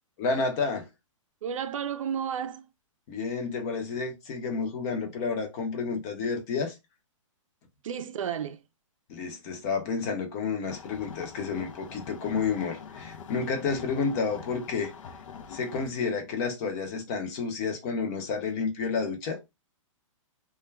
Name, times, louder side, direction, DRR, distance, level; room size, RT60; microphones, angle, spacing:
voice 1, 0.2-0.9 3.1-6.7 9.1-14.9 15.5-19.4, left 5 dB, 30° left, 0.6 m, -30 dB
voice 2, 1.4-2.7 7.8-8.6, right 8 dB, 75° right, 0.4 m, -32 dB
sound 1, 10.7-15.9, left 6 dB, 70° left, 0.4 m, -44 dB
2.2 x 2.1 x 3.2 m
hypercardioid pair, 150°, 17 cm